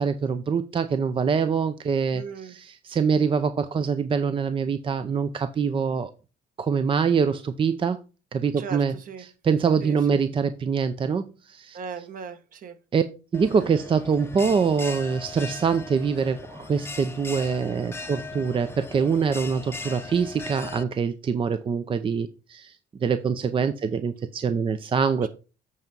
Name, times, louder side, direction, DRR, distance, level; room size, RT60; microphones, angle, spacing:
voice 1, 0.0-6.1 6.6-8.0 8.3-8.9 9.2-11.8 12.9-13.0 13.3-25.3, right 6 dB, 30° right, 0.6 m, -24 dB
voice 2, 2.1-2.5 8.6-9.2 9.8-10.2 11.7-12.8, right 6 dB, 55° right, 1.5 m, -38 dB
Bell, 13.3-20.8, left 3 dB, 15° left, 0.7 m, -39 dB
8.4 x 4.6 x 5.3 m
cardioid pair, 110°, 17 cm